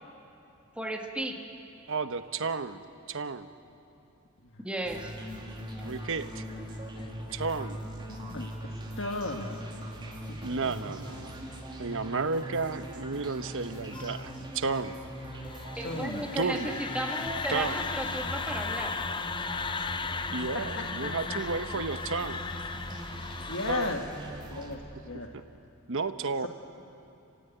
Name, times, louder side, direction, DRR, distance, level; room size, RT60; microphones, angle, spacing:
voice 1, 0.8-1.4 4.6-5.1 15.8-19.0, right 1 dB, 5° right, 1 dB, 1.8 m, -34 dB
voice 2, 1.9-2.8 3.1-3.5 5.8-6.4 7.3-7.8 10.4-11.4 11.8-15.0 16.4-16.8 17.5-17.8 20.3-22.4 23.7-24.0 25.3-25.4 25.9-26.5, right 4 dB, 65° right, 10 dB, 1.1 m, -32 dB
sound 1, 4.8-24.8, equal, 25° right, 3.0 m, -41 dB
sound 2, 5.1-23.9, left 4 dB, 20° left, 0.7 m, -39 dB
voice 3, 8.3-9.6 10.3-10.4 15.8-16.3 21.0-21.4 23.5-24.0 24.5-24.8 25.1-25.3 26.4-26.5, left 3 dB, 60° left, 2 dB, 1.5 m, -35 dB
29.5 x 16.0 x 9.2 m, 2.9 s
head